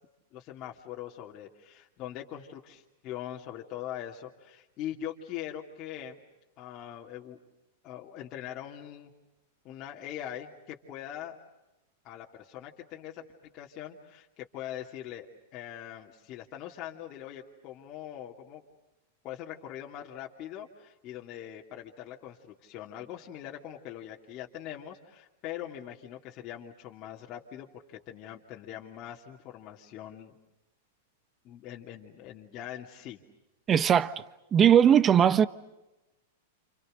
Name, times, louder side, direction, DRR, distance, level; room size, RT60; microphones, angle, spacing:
voice 1, 0.3-6.2 6.6-7.4 7.8-9.1 9.6-11.4 12.0-15.3 15.5-18.6 19.2-30.3 31.4-33.2, left 11 dB, 40° left, 2.9 m, -42 dB
voice 2, 33.7-34.1 34.5-35.5, right 9 dB, 25° right, 1.2 m, -19 dB
29.5 x 28.5 x 6.6 m
hypercardioid pair, 105°, 0 cm